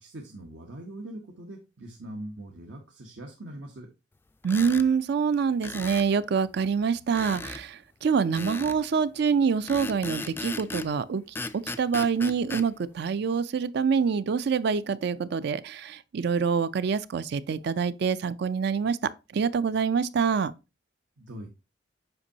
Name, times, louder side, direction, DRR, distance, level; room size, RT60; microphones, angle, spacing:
voice 1, 0.0-3.9 21.2-21.5, right 1 dB, 80° right, 1.0 m, -42 dB
sound 1, 4.4-4.9 5.6-6.1 7.1-7.6 8.3-8.8 9.7-10.9 11.3-12.7, left 2 dB, 10° left, 0.3 m, -36 dB
voice 2, 4.4-11.2 11.5-20.5, right 6 dB, 60° right, 0.4 m, -26 dB
7.9 x 5.3 x 2.7 m
head